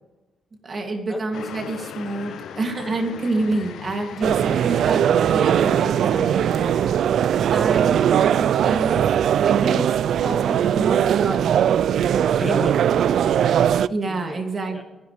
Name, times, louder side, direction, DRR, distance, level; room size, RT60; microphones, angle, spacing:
voice 1, 0.6-6.9 7.5-9.8 10.2-11.6 13.9-14.8, right 2 dB, 40° right, 3 dB, 2.7 m, -28 dB
sound 1, 1.3-7.0, left 9 dB, 80° left, 0.6 m, -39 dB
sound 2, 4.2-13.9, right 9 dB, 75° right, 0.3 m, -20 dB
voice 2, 12.3-13.5 14.0-14.4 14.7-14.8, left 1 dB, 15° left, 4 dB, 1.4 m, -34 dB
24.0 x 10.5 x 3.5 m, 1.0 s
cardioid pair, 115°, 0 cm